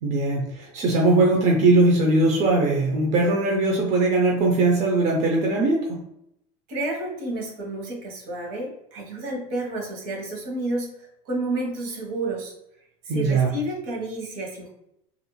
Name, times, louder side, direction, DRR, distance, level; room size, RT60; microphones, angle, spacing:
voice 1, 0.0-6.0 13.1-13.5, right 2 dB, 45° right, 0 dB, 0.5 m, -20 dB
voice 2, 6.7-12.5 13.0-14.7, right 2 dB, 70° right, 0 dB, 1.0 m, -30 dB
2.4 x 2.1 x 3.0 m, 0.79 s
supercardioid pair, 130°, 16 cm